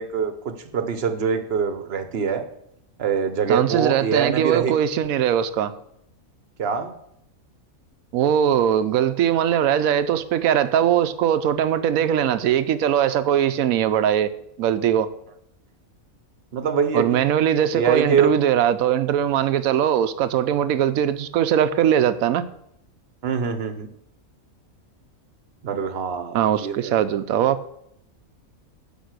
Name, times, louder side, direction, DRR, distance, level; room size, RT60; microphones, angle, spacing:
voice 1, 0.0-2.5 3.0-4.7 6.6-7.0 16.5-17.2 17.7-18.3 23.2-23.9 25.6-27.0, right 6 dB, 50° right, 1.0 m, -24 dB
voice 2, 3.5-5.7 8.1-14.3 14.6-15.1 16.9-22.5 26.3-27.6, right 10 dB, 85° right, 1.1 m, -20 dB
10.5 x 5.4 x 6.6 m
omnidirectional pair, 1.5 m